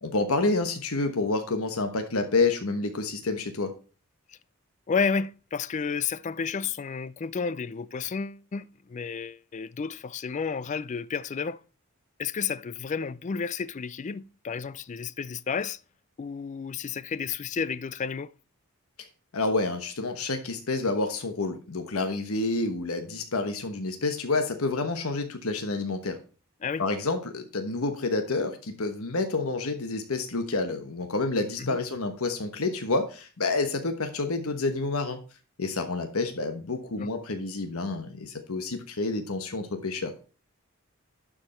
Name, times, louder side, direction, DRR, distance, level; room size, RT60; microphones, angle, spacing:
voice 1, 0.0-3.7 19.3-26.2 26.8-35.2 35.6-40.1, left 3 dB, 70° left, 1.1 m, -29 dB
voice 2, 4.9-11.6 12.2-15.8 16.2-18.3 26.6-26.9 31.6-31.8 37.0-37.1, left 5 dB, 35° left, 0.3 m, -31 dB
11.5 x 5.1 x 4.3 m
head